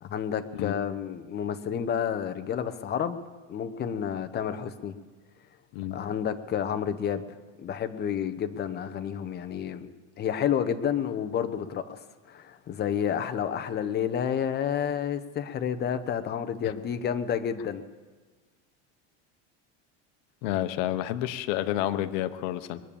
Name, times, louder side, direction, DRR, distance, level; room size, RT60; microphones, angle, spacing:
voice 1, 0.0-3.2 3.5-4.9 5.9-7.2 7.6-9.9 10.2-12.0 12.3-17.8, left 8 dB, 30° left, 10 dB, 0.9 m, -30 dB
voice 2, 20.4-22.8, left 13 dB, 70° left, 11 dB, 1.1 m, -30 dB
21.5 x 8.6 x 7.1 m, 1.4 s
cardioid pair, 145°, 34 cm